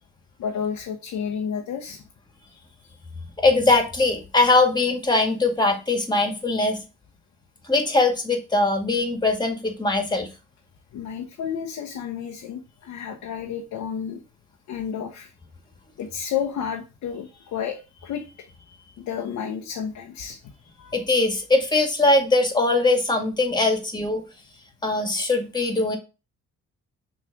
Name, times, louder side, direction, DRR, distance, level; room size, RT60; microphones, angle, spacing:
voice 1, 0.4-2.0 2.4-3.0 10.9-14.2 14.7-15.3 16.0-20.9, left 8 dB, 75° left, 2 dB, 1.0 m, -32 dB
voice 2, 3.4-6.8 7.7-10.3 20.9-24.2 24.8-26.0, left 2 dB, 15° left, 4 dB, 1.9 m, -21 dB
6.3 x 3.3 x 4.6 m, 0.30 s
cardioid pair, 90°, 30 cm